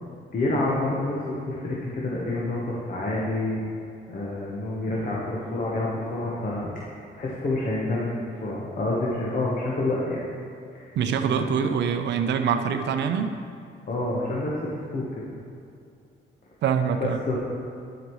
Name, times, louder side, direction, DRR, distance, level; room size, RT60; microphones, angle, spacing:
voice 1, 0.3-3.6 4.1-6.7 7.2-10.2 10.7-10.9 11.2-11.7 13.9-15.0 17.0-17.4, left 2 dB, 45° left, -5 dB, 1.1 m, -28 dB
voice 2, 11.0-13.4 16.6-17.2, right 7 dB, 60° right, 7 dB, 0.5 m, -24 dB
11.0 x 5.0 x 3.1 m, 2.4 s
cardioid pair, 90°, 20 cm